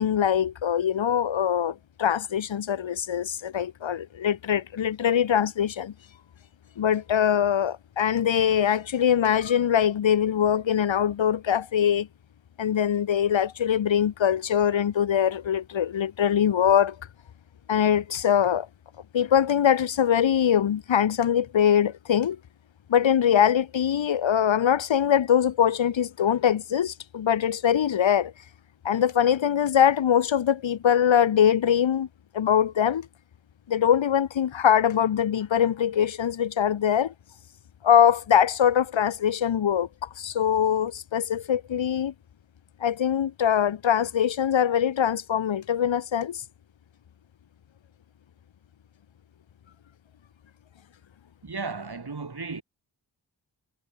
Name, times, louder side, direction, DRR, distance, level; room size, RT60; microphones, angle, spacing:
voice 1, 0.0-5.9 6.8-12.1 12.6-17.0 17.7-18.7 19.1-22.4 22.9-28.3 28.8-32.1 32.3-33.1 33.7-37.1 37.8-42.1 42.8-46.4, left 9 dB, 75° left, 0.8 m, -23 dB
voice 2, 51.4-52.6, right 4 dB, 55° right, 3.3 m, -34 dB
cardioid pair, 40°, 46 cm